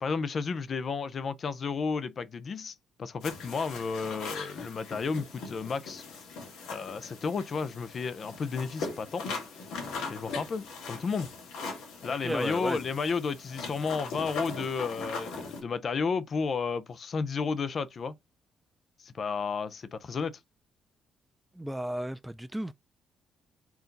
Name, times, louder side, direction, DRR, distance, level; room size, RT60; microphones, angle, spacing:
voice 1, 0.0-6.0 6.7-9.3 10.1-11.3 12.0-18.1 19.0-20.3, left 5 dB, 40° left, 0.6 m, -32 dB
sound 1, 3.2-15.6, left 4 dB, 90° left, 2.9 m, -40 dB
voice 2, 12.2-12.8 21.6-22.7, right 1 dB, 5° right, 0.3 m, -33 dB
4.7 x 3.9 x 5.2 m
cardioid pair, 140°, 0 cm